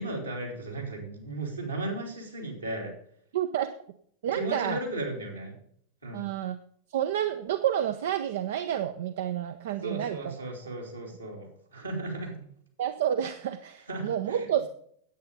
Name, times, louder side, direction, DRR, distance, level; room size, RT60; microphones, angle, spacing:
voice 1, 0.0-2.9 4.3-5.6 6.0-6.2 9.8-12.4 13.9-14.5, right 2 dB, 80° right, -1 dB, 3.3 m, -35 dB
voice 2, 3.3-3.7 4.2-4.8 6.1-6.6 6.9-10.4 12.8-14.7, right 10 dB, 55° right, 9 dB, 0.6 m, -29 dB
9.5 x 8.7 x 5.4 m, 0.64 s
figure-of-eight pair, 90°, 0 cm